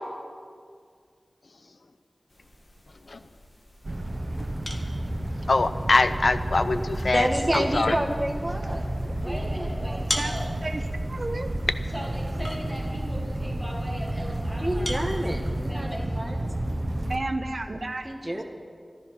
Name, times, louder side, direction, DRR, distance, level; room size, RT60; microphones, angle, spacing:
sound 1, 2.3-15.7, left 1 dB, 30° left, 1.7 m, -42 dB
sound 2, 3.8-17.2, right 1 dB, 40° right, 1.2 m, -31 dB
voice 1, 5.5-7.3 7.8-7.9, left 3 dB, 70° left, 11 dB, 0.7 m, -22 dB
voice 2, 7.0-10.3 14.6-16.5 18.0-18.4, right 1 dB, 15° right, 2 dB, 1.3 m, -30 dB
voice 3, 9.2-10.5 11.9-15.1 15.7-16.6 18.4-18.5, equal, 10° left, -3 dB, 2.6 m, -38 dB
voice 4, 11.1-11.5 17.1-18.1, right 2 dB, 60° right, 8 dB, 1.0 m, -31 dB
14.5 x 12.5 x 6.1 m, 2.1 s
wide cardioid pair, 80°, 0 cm